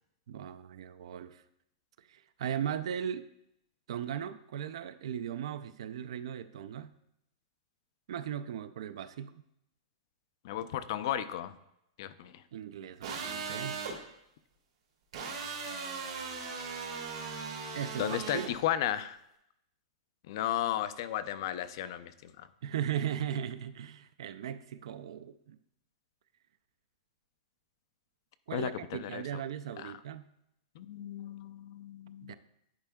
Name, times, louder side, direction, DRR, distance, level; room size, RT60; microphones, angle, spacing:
voice 1, 0.3-1.4 2.1-3.2 3.9-6.9 8.1-9.4 12.5-13.8 17.7-18.5 22.6-25.6 28.5-30.3 32.2-32.3, right 9 dB, 70° right, 13 dB, 0.3 m, -37 dB
voice 2, 10.4-11.5 12.0-12.4 18.0-19.2 20.3-22.5 28.5-29.4 29.8-29.9 30.7-32.3, left 11 dB, 45° left, 14 dB, 0.3 m, -34 dB
sound 1, 13.0-13.9 15.1-18.5, right 5 dB, 85° right, 2.2 m, -38 dB
10.5 x 4.4 x 2.2 m, 0.80 s
supercardioid pair, 165°, 3 cm